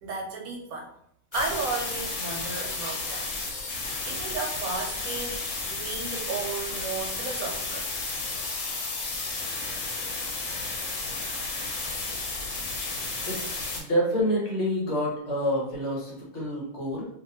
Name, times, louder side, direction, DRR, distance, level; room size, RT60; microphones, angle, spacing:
voice 1, 0.0-0.9 1.3-3.3 4.0-7.9 13.0-13.1, right 4 dB, 90° right, 1 dB, 1.2 m, -34 dB
sound 1, 1.3-13.8, left 3 dB, 75° left, 1.2 m, -32 dB
voice 2, 13.3-17.1, equal, 55° left, -4 dB, 1.4 m, -28 dB
2.8 x 2.5 x 2.8 m, 0.72 s
omnidirectional pair, 1.5 m